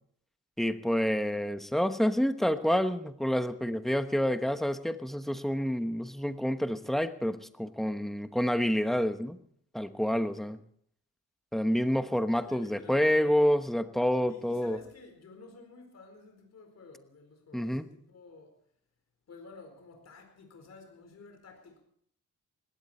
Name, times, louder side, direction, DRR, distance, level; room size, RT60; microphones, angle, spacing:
voice 1, 0.6-9.4 9.7-10.6 11.5-14.8 17.5-17.9, equal, ahead, 9 dB, 1.1 m, -28 dB
voice 2, 12.4-13.4 14.2-18.5 19.3-21.8, left 3 dB, 55° left, 4 dB, 4.3 m, -51 dB
19.5 x 17.0 x 4.4 m, 0.66 s
wide cardioid pair, 120°, 31 cm